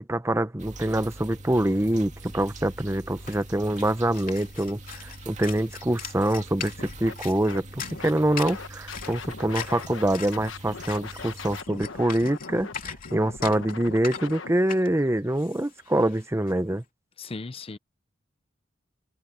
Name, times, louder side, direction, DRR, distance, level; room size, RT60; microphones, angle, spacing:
voice 1, 0.0-16.8, right 1 dB, 15° right, 0.8 m, -25 dB
sound 1, 0.6-11.6, right 2 dB, 40° right, 2.2 m, -43 dB
sound 2, 2.4-2.5 2.7-16.5, left 7 dB, 45° left, 3.2 m, -41 dB
Scratching (performance technique), 6.8-7.1 7.5-10.0 10.3-14.5, left 4 dB, 80° left, 1.3 m, -40 dB
voice 2, 17.2-17.8, left 3 dB, 30° left, 0.6 m, -36 dB
open air
head